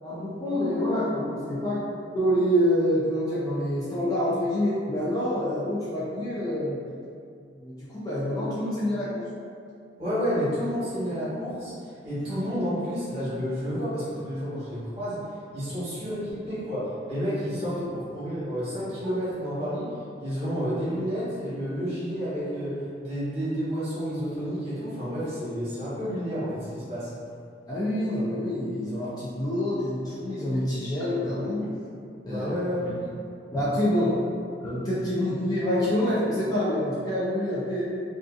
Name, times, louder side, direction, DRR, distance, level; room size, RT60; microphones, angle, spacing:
voice 1, 0.0-1.9 2.1-6.8 7.6-9.3 15.6-15.7 17.5-17.8 27.7-31.7 32.3-32.5 32.8-33.1 33.5-34.2 34.6-37.8, equal, 20° left, -9 dB, 0.4 m, -27 dB
voice 2, 10.0-19.9 20.2-27.1 32.2-33.0, equal, 35° right, -12 dB, 1.2 m, -30 dB
2.6 x 2.3 x 2.4 m, 2.3 s
head